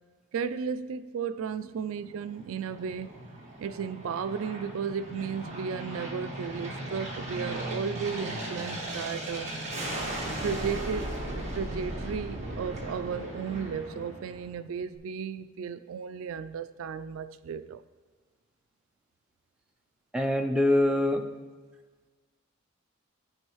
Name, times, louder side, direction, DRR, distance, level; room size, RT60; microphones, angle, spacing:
voice 1, 0.3-3.2 3.6-9.5 10.4-17.8, right 6 dB, 70° right, 0.3 m, -34 dB
Aircraft, 1.9-14.7, right 1 dB, 30° right, 1.8 m, -37 dB
voice 2, 20.1-21.3, left 1 dB, 5° right, 0.5 m, -24 dB
15.0 x 5.3 x 3.1 m
head